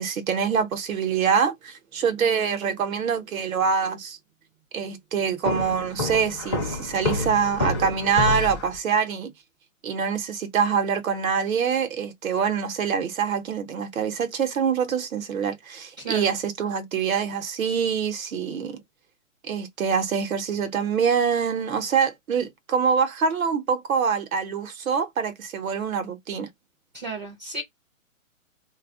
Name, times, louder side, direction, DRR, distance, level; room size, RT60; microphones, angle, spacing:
voice 1, 0.0-4.2 4.7-9.3 9.8-18.8 19.4-26.5, right 6 dB, 80° right, 0.9 m, -25 dB
Walk footsteps, 5.4-8.8, left 3 dB, 20° left, 0.5 m, -28 dB
voice 2, 16.0-16.3 26.9-27.6, right 2 dB, 30° right, 0.5 m, -33 dB
2.3 x 2.1 x 3.5 m
hypercardioid pair, 170°, 41 cm